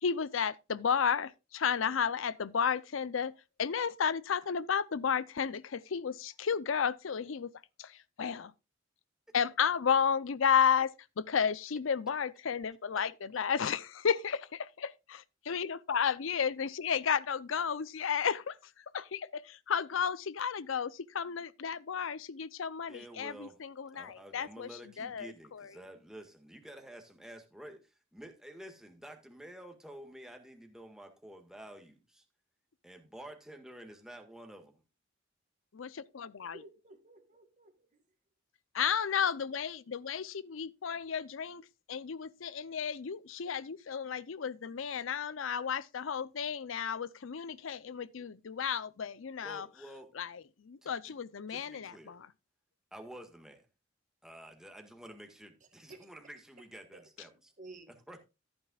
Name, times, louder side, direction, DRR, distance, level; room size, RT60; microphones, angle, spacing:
voice 1, 0.0-7.5 7.8-8.5 9.3-24.7 25.0-25.7 35.7-36.6 38.7-49.7 50.1-52.3, left 7 dB, 85° left, 0.5 m, -33 dB
voice 2, 22.9-23.6 23.9-32.2 32.8-34.8 49.4-50.1 50.8-51.2 51.5-52.2 52.9-53.7 54.2-57.5 57.9-58.3, right 1 dB, 5° right, 1.7 m, -50 dB
voice 3, 36.5-38.0 55.9-56.1 56.9-57.0 57.6-57.9, right 2 dB, 40° right, 2.1 m, -52 dB
14.0 x 8.8 x 2.4 m
head